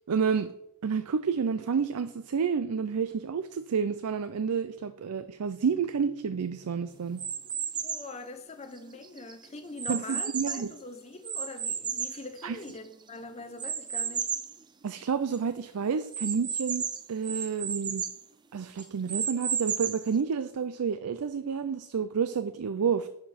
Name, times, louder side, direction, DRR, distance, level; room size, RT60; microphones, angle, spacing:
voice 1, 0.1-0.5 0.8-7.2 9.9-10.7 12.4-12.6 14.8-18.0 18.5-23.1, right 6 dB, 85° right, 0.5 m, -30 dB
sound 1, 7.2-8.1 8.8-10.8 11.3-12.9 13.6-14.6 15.0-15.1 15.3-15.4 16.1-18.2 18.8-20.1, right 7 dB, 20° right, 0.4 m, -33 dB
voice 2, 7.8-14.3, left 3 dB, 30° left, 0.6 m, -43 dB
10.5 x 4.4 x 5.7 m
head